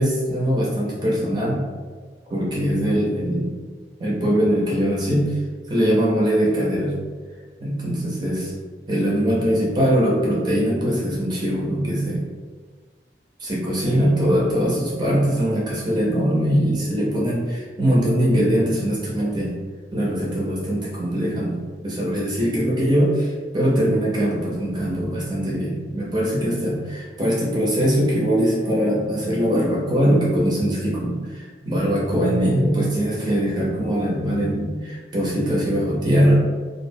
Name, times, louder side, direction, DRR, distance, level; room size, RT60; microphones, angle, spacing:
voice 1, 0.0-1.6 2.3-3.5 4.0-5.4 5.7-7.0 7.6-8.5 8.9-12.2 13.4-19.6 19.9-21.6 21.8-36.5, equal, 25° right, -4 dB, 0.5 m, -21 dB
2.3 x 2.0 x 2.6 m, 1.5 s
head